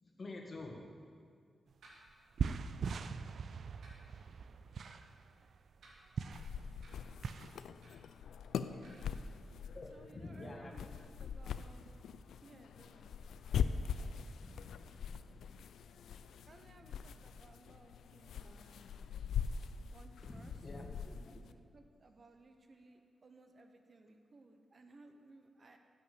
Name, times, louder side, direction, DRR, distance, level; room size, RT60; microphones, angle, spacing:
voice 1, 0.0-0.8 9.7-10.9 14.4-15.7 20.2-21.4, left 2 dB, 45° left, 1 dB, 1.9 m, -49 dB
sound 1, 1.7-1.8 2.1-7.6, right 6 dB, 70° right, 0.4 m, -41 dB
sound 2, 1.8-2.0 2.8-3.0 3.8-4.0 4.8-4.9 5.7-6.3 6.8-7.0 7.8-8.1 8.8-8.9, right 2 dB, 85° right, 2.8 m, -60 dB
sound 3, 6.3-21.5, left 7 dB, 90° left, 0.4 m, -42 dB
voice 2, 8.4-9.2 9.9-11.9 12.4-13.1 16.5-19.1 19.9-20.6 21.5-25.8, right 3 dB, 50° right, 6 dB, 1.0 m, -61 dB
10.0 x 6.7 x 8.2 m, 2.1 s
cardioid pair, 65°, 0 cm